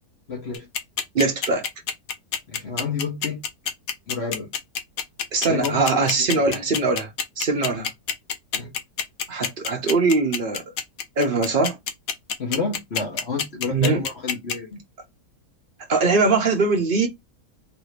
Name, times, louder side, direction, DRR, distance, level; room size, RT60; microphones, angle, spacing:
voice 1, 0.3-0.7 2.5-3.4 4.1-4.5 5.5-6.5 7.7-7.8 8.5-8.7 12.4-14.8, left 4 dB, 45° left, 1.1 m, -30 dB
sound 1, 0.5-14.5, left 7 dB, 70° left, 1.1 m, -26 dB
voice 2, 1.1-1.7 5.3-7.9 9.3-10.7 11.2-11.8 13.7-14.0 15.9-17.1, right 3 dB, 45° right, 0.7 m, -21 dB
3.2 x 2.7 x 3.2 m
omnidirectional pair, 1.7 m